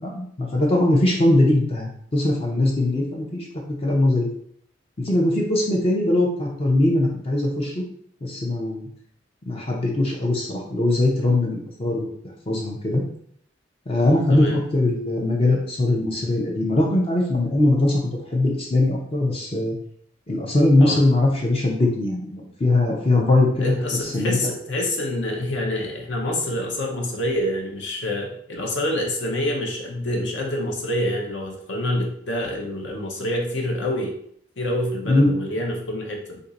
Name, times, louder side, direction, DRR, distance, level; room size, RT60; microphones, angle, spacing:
voice 1, 0.0-4.3 5.0-7.8 8.2-8.9 9.5-12.1 12.5-13.0 13.9-18.0 18.3-19.7 20.3-23.7 24.1-24.4 35.1-35.3, left 2 dB, 30° left, -1 dB, 0.5 m, -21 dB
voice 2, 23.6-34.1 34.6-36.4, left 1 dB, 70° left, 0 dB, 0.8 m, -27 dB
2.6 x 2.5 x 4.0 m, 0.66 s
head